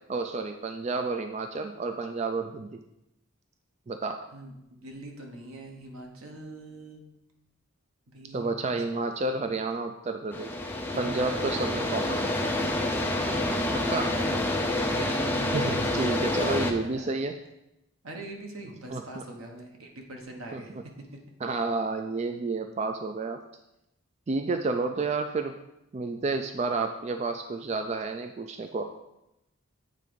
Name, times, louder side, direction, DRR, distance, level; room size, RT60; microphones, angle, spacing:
voice 1, 0.1-2.8 3.9-4.2 8.3-10.5 11.0-12.3 13.7-14.2 15.5-17.4 18.9-19.2 20.5-20.6 21.4-23.4 24.3-25.6 25.9-28.8, right 3 dB, 30° right, 6 dB, 0.3 m, -30 dB
voice 2, 4.3-7.0 8.1-8.8 10.9-12.2 14.8-17.2 18.0-21.2, right 1 dB, 85° right, 1 dB, 1.3 m, -43 dB
sound 1, 10.3-16.7, left 1 dB, 10° left, 0.6 m, -28 dB
8.4 x 3.7 x 5.1 m, 0.87 s
head